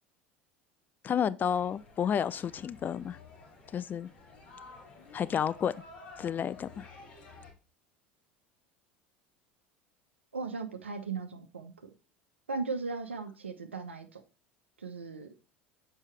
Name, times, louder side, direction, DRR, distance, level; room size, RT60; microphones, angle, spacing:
voice 1, 1.0-3.2 3.7-4.1 5.1-5.7 6.2-6.9, left 8 dB, 30° left, 0.5 m, -31 dB
sound 1, 1.4-7.5, left 3 dB, 65° left, 2.4 m, -52 dB
voice 2, 10.3-11.9 12.5-14.2 14.8-15.3, right 4 dB, 85° right, 0.9 m, -37 dB
7.2 x 5.4 x 3.3 m
figure-of-eight pair, 75°, 6 cm